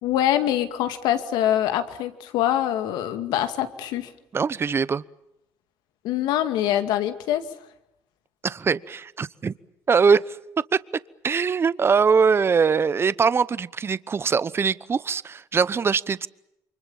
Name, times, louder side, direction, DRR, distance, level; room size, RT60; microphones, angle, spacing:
voice 1, 0.0-4.1 6.0-7.4, left 11 dB, 85° left, 9 dB, 2.3 m, -24 dB
voice 2, 4.3-5.0 8.4-9.5 9.9-10.4 10.7-10.8 11.2-16.3, right 5 dB, 35° right, 18 dB, 0.9 m, -22 dB
29.0 x 24.5 x 7.2 m, 0.84 s
cardioid pair, 90°, 7 cm